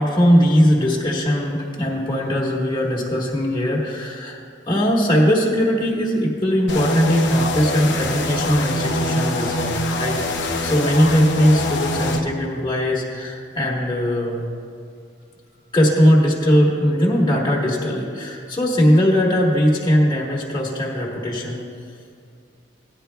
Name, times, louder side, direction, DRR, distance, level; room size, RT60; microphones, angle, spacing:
voice 1, 0.0-4.4 4.7-14.4 15.7-21.6, equal, 20° left, -4 dB, 1.4 m, -19 dB
sound 1, 6.7-12.2, left 1 dB, 65° left, 0.7 m, -24 dB
17.0 x 10.0 x 2.3 m, 2.3 s
head